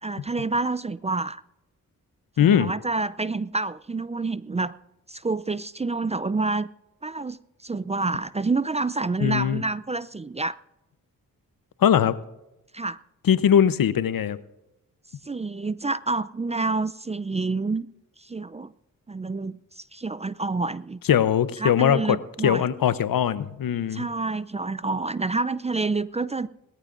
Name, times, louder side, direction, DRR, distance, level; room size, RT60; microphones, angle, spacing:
voice 1, 0.0-1.4 2.4-4.7 5.1-6.7 7.0-10.6 12.7-13.0 15.2-17.9 18.2-18.7 19.1-21.0 21.6-22.7 23.9-26.5, right 3 dB, 20° right, 17 dB, 0.4 m, -28 dB
voice 2, 2.4-2.7 9.2-9.6 11.8-12.2 13.3-14.4 21.1-22.2 22.4-24.1, left 9 dB, 70° left, 15 dB, 0.8 m, -20 dB
20.5 x 14.0 x 2.5 m, 0.92 s
cardioid pair, 50°, 36 cm